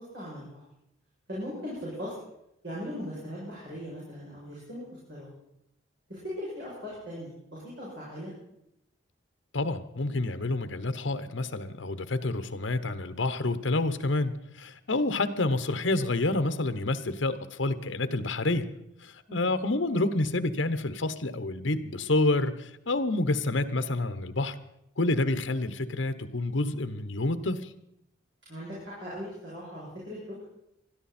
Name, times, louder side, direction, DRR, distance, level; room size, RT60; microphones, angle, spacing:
voice 1, 0.1-0.6 1.3-2.1 2.6-4.8 5.1-5.3 6.1-8.3 19.3-19.5 28.5-30.4, equal, 60° right, -8 dB, 7.4 m, -39 dB
voice 2, 9.5-18.7 19.0-24.6 25.0-27.7, left 2 dB, 70° left, 11 dB, 1.0 m, -28 dB
20.5 x 13.5 x 4.3 m, 0.82 s
head